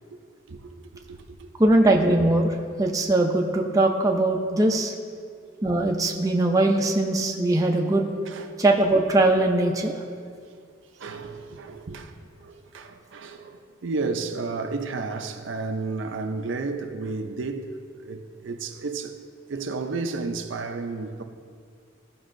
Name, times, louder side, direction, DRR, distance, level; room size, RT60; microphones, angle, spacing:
voice 1, 0.5-0.8 1.1-1.5 8.3-8.5 11.0-12.1 12.4-19.2 19.5-21.2, right 3 dB, 65° right, 0.5 m, -32 dB
voice 2, 1.6-4.9 5.6-8.1 8.6-9.9, right 2 dB, 15° right, 0.5 m, -21 dB
14.0 x 5.3 x 2.6 m
head